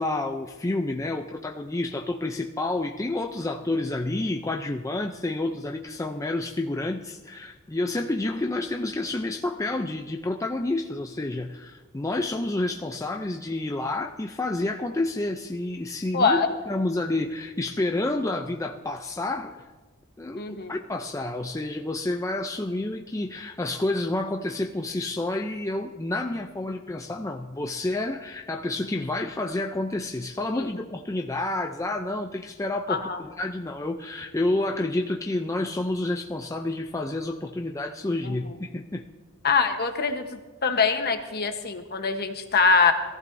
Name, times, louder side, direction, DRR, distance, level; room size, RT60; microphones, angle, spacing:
voice 1, 0.0-19.6 20.2-39.0, left 2 dB, 15° left, 3 dB, 0.5 m, -29 dB
voice 2, 16.1-16.5 20.4-20.7 30.5-30.7 32.9-33.2 38.2-38.3 39.4-40.2 40.6-42.9, left 5 dB, 50° left, 6 dB, 1.1 m, -23 dB
22.0 x 14.5 x 2.7 m, 1.2 s
head